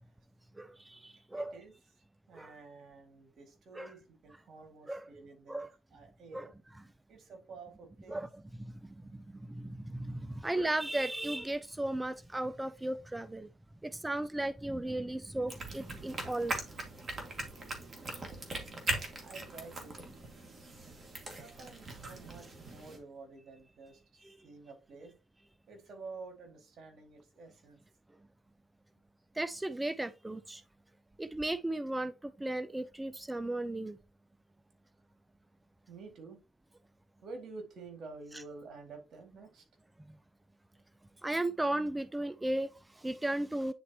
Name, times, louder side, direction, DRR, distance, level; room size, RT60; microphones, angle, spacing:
voice 1, 0.6-1.5 2.3-2.5 3.7-3.9 4.9-5.1 5.5-5.7 6.3-6.5 8.1-8.4 9.3-13.5 13.8-16.5 24.2-24.3 29.4-30.6 31.2-34.0 41.2-43.7, right 1 dB, 10° right, 0.4 m, -35 dB
voice 2, 1.3-1.7 2.3-5.6 5.9-6.5 7.1-8.2 19.2-20.0 21.4-25.1 25.7-27.8 35.9-36.4 37.2-39.6, right 4 dB, 65° right, 2.1 m, -50 dB
sound 1, 15.5-23.0, right 2 dB, 35° right, 2.0 m, -40 dB
9.4 x 4.1 x 2.9 m
cardioid pair, 90°, 0 cm